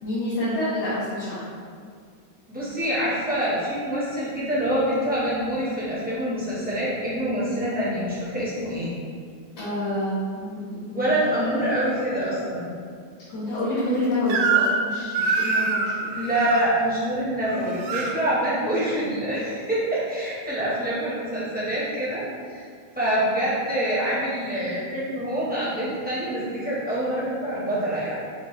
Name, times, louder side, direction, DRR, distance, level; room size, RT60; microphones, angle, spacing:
voice 1, 0.0-1.4 9.6-11.1 13.3-15.9, left 1 dB, 75° left, -13 dB, 2.0 m, -27 dB
voice 2, 2.5-9.0 10.9-12.7 16.1-22.6 22.9-28.2, right 1 dB, 5° right, -10 dB, 1.0 m, -26 dB
Crying sobbing / Screech, 14.3-14.9 15.1-16.6 17.5-18.1, right 4 dB, 75° right, 1.1 m, -24 dB
6.3 x 2.6 x 3.2 m, 2.1 s
omnidirectional pair, 2.0 m